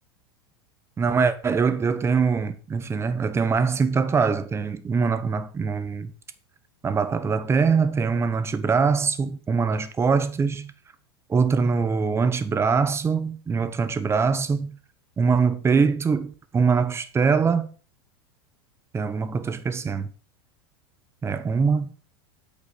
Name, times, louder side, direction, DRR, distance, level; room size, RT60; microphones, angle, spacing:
voice 1, 1.0-6.1 6.8-10.7 11.3-14.8 15.2-17.7 18.9-20.1 21.2-21.9, right 5 dB, 20° right, 1.0 m, -23 dB
8.5 x 5.4 x 6.7 m
hypercardioid pair, 115°, 14 cm